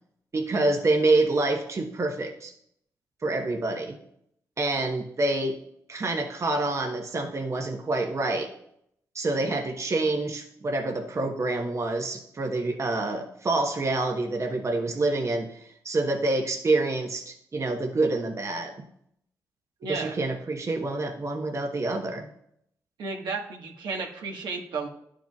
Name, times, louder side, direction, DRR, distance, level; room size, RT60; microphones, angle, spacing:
voice 1, 0.3-2.5 3.2-4.0 4.6-5.5 5.9-8.5 9.1-18.7 19.9-22.3, right 2 dB, 40° right, 3 dB, 1.0 m, -27 dB
voice 2, 19.8-20.2 23.0-24.9, right 4 dB, 70° right, 0 dB, 1.3 m, -33 dB
11.5 x 5.0 x 2.3 m, 0.72 s
hypercardioid pair, 45°, 8 cm